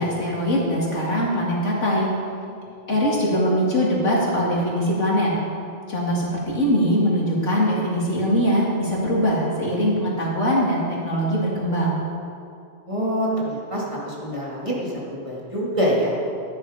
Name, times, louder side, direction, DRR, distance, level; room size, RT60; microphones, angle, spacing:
voice 1, 0.0-2.1 2.9-5.3 5.9-12.0, equal, 85° left, -4 dB, 2.9 m, -22 dB
voice 2, 12.9-16.1, equal, 25° right, -5 dB, 2.4 m, -26 dB
13.0 x 9.8 x 5.1 m, 2.5 s
omnidirectional pair, 1.2 m